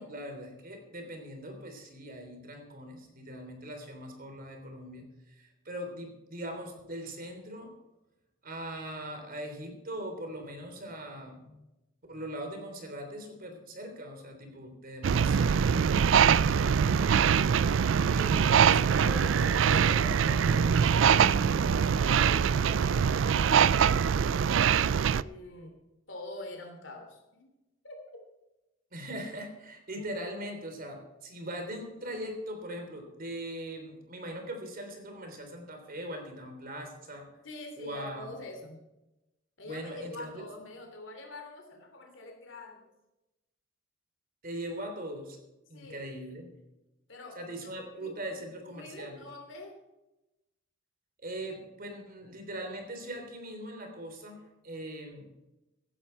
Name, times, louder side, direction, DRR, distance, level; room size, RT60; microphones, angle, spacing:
voice 1, 0.0-7.7 8.4-11.6 12.1-17.2 18.1-19.8 28.9-37.3 37.8-38.4 39.6-40.5 44.4-45.4 45.7-46.5 47.4-49.2 51.2-55.3, right 1 dB, 50° right, 5 dB, 3.4 m, -41 dB
sound 1, 15.0-25.2, right 7 dB, 70° right, 0.4 m, -23 dB
voice 2, 19.0-24.4 25.1-25.7 26.1-27.5 27.8-28.2 29.9-30.1 37.4-38.8 39.6-42.9 45.7-46.0 47.1-48.4 48.7-49.8, left 2 dB, 70° left, 3 dB, 3.1 m, -45 dB
16.5 x 12.0 x 4.5 m, 0.98 s
head